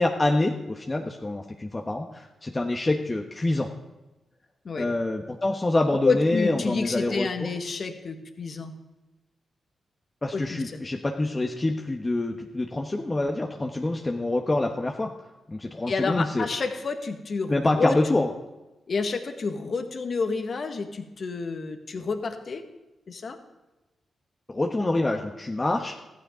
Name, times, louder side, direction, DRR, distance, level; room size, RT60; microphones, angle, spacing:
voice 1, 0.0-3.7 4.8-7.5 10.2-15.1 15.5-16.4 17.5-18.3 24.5-25.9, left 2 dB, 30° left, 2 dB, 1.2 m, -26 dB
voice 2, 6.0-8.7 10.3-10.8 15.9-18.0 18.9-22.6 23.1-23.4, left 4 dB, 55° left, 6 dB, 1.6 m, -29 dB
14.5 x 9.6 x 5.1 m, 1.1 s
supercardioid pair, 45°, 0 cm